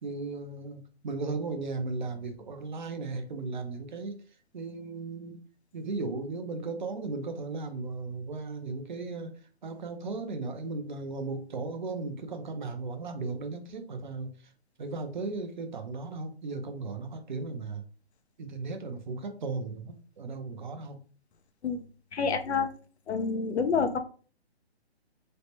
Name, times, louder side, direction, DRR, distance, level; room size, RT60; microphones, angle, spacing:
voice 1, 0.0-4.1 4.5-5.4 5.7-9.3 9.6-14.3 14.8-17.8 18.4-21.0, right 3 dB, 45° right, 6 dB, 0.6 m, -36 dB
voice 2, 22.1-22.7 23.1-24.0, left 5 dB, 80° left, 8 dB, 0.6 m, -28 dB
3.2 x 2.1 x 2.9 m, 0.40 s
hypercardioid pair, 160°, 33 cm